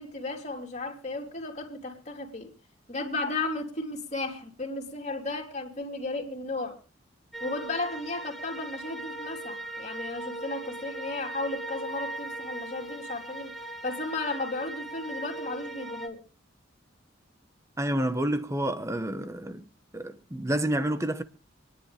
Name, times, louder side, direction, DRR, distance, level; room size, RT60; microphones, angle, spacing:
voice 1, 0.0-2.5 2.9-6.8 7.4-13.5 13.8-16.2, left 2 dB, 35° left, 3.2 m, -34 dB
sound 1, 7.3-16.1, right 2 dB, ahead, 2.8 m, -39 dB
voice 2, 17.8-19.6 19.9-21.2, right 1 dB, 15° right, 1.1 m, -29 dB
27.5 x 10.5 x 3.4 m
head